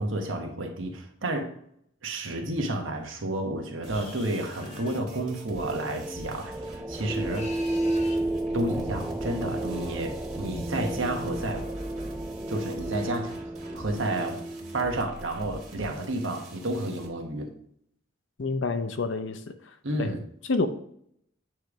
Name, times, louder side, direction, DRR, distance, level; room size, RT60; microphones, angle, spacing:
voice 1, 0.0-1.5 2.0-7.6 8.5-11.6 12.5-13.3 13.7-14.4 14.7-17.5 19.8-20.2, right 1 dB, 75° right, 1.3 m, -31 dB
sound 1, 3.8-5.1 7.1-8.3, left 3 dB, 35° left, 1.2 m, -46 dB
sound 2, 3.8-17.1, right 1 dB, 35° right, 2.2 m, -45 dB
sound 3, 4.7-15.2, right 1 dB, 10° right, 0.4 m, -33 dB
voice 2, 18.4-19.5 20.0-20.1 20.5-20.7, left 3 dB, 65° left, 0.7 m, -28 dB
9.2 x 3.3 x 5.0 m
head